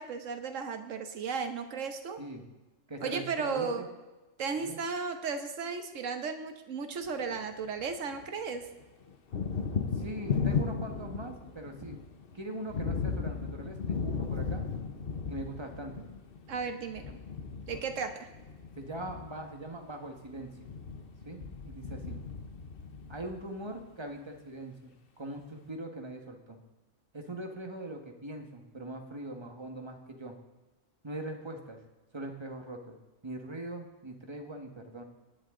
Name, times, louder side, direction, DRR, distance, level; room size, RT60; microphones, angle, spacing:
voice 1, 0.0-2.2 3.0-3.8 4.4-8.7 16.5-17.2 17.7-18.3, right 5 dB, 65° right, 7 dB, 1.5 m, -35 dB
voice 2, 2.9-3.9 4.6-4.8 9.9-12.0 12.3-14.7 15.3-16.1 18.8-20.7 21.2-22.2 23.1-26.6 27.1-30.3 31.0-31.8 32.1-33.0 33.2-35.0, right 1 dB, 20° right, 3 dB, 1.5 m, -41 dB
Thunder, 7.1-8.3 8.5-23.8, left 5 dB, 45° left, 1.1 m, -36 dB
18.5 x 10.5 x 3.9 m, 1.1 s
omnidirectional pair, 1.4 m